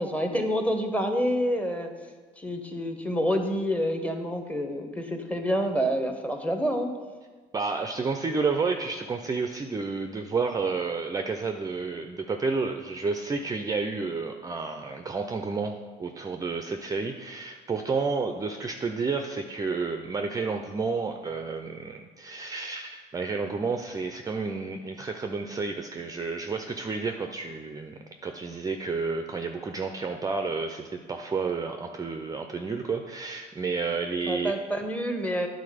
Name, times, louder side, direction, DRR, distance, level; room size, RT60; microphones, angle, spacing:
voice 1, 0.0-1.9 2.4-6.9 34.2-35.5, equal, 10° left, 4 dB, 0.9 m, -28 dB
voice 2, 7.5-34.5, right 4 dB, 20° right, 5 dB, 0.4 m, -30 dB
9.7 x 3.9 x 4.9 m, 1.4 s
cardioid pair, 110°, 17 cm